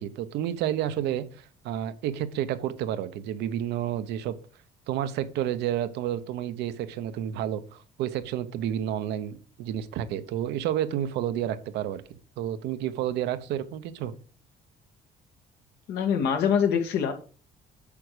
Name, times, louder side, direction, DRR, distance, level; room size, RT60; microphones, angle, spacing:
voice 1, 0.0-4.4 4.9-14.1, right 11 dB, 85° right, 0.9 m, -30 dB
voice 2, 15.9-17.1, left 7 dB, 75° left, 2.0 m, -24 dB
8.5 x 6.1 x 5.0 m
cardioid pair, 110°, 17 cm